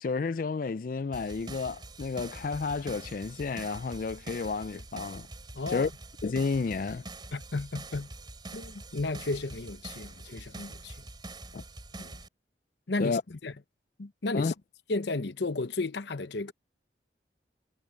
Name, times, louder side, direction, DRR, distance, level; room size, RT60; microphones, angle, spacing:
voice 1, 0.0-5.3 5.7-5.9 6.2-7.0 11.5-11.6 13.0-13.2 14.3-14.5, left 4 dB, 50° left, 0.4 m, -31 dB
sound 1, 1.1-12.3, right 2 dB, 25° right, 4.5 m, -45 dB
voice 2, 5.5-5.9 7.3-8.1 8.5-11.1 12.0-12.2 12.9-13.5 14.0-14.5 14.9-16.5, left 3 dB, 70° left, 0.9 m, -33 dB
head